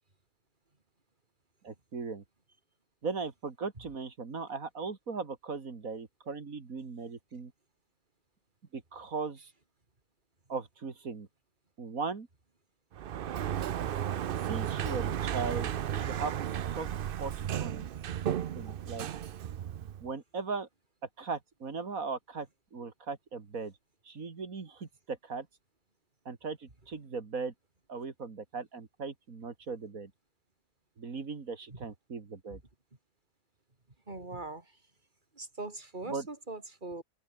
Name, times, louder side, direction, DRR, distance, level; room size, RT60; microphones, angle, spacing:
voice 1, 1.6-2.2 3.0-7.5 8.7-9.5 10.5-11.3 11.8-12.3 14.5-16.9 17.2-17.3 17.6-17.9 18.6-19.1 20.0-20.7 21.2-23.7 24.0-25.5 26.3-27.5 27.9-30.1 31.0-32.6 36.0-36.3, right 4 dB, 60° right, 2.6 m, -38 dB
Sliding door, 12.9-20.1, right 10 dB, 80° right, 0.4 m, -34 dB
voice 2, 34.1-34.8 35.3-37.0, right 2 dB, 30° right, 3.4 m, -41 dB
omnidirectional pair, 1.7 m